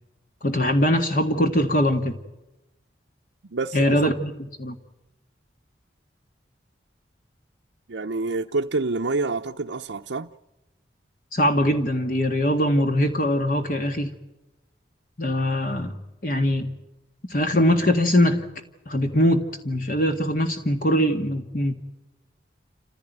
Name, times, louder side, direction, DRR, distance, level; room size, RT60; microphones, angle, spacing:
voice 1, 0.4-2.2 3.7-4.3 4.6-4.7 11.3-14.1 15.2-16.0 16.2-16.7 17.3-18.4 18.9-21.7, equal, 45° left, 1.8 m, -22 dB
voice 2, 3.5-4.0 7.9-10.3, right 3 dB, 80° right, 0.8 m, -27 dB
28.5 x 15.5 x 9.4 m
head